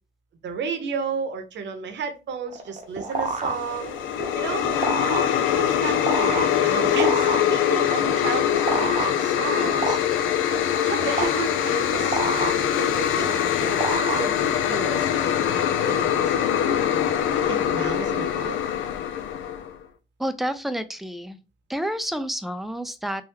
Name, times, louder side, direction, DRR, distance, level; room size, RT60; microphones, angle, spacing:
voice 1, 0.4-4.0 4.4-4.7 5.0-5.2 5.5-10.0 10.8-16.8 17.5-18.5, right 6 dB, 65° right, 6 dB, 0.8 m, -33 dB
sound 1, 2.5-14.9, right 3 dB, 35° right, 0.7 m, -30 dB
sound 2, 3.3-19.8, left 10 dB, 80° left, 0.4 m, -23 dB
voice 2, 20.2-21.4 21.7-23.2, equal, ahead, 10 dB, 0.3 m, -29 dB
3.4 x 2.2 x 2.9 m, 0.30 s
cardioid pair, 90°, 20 cm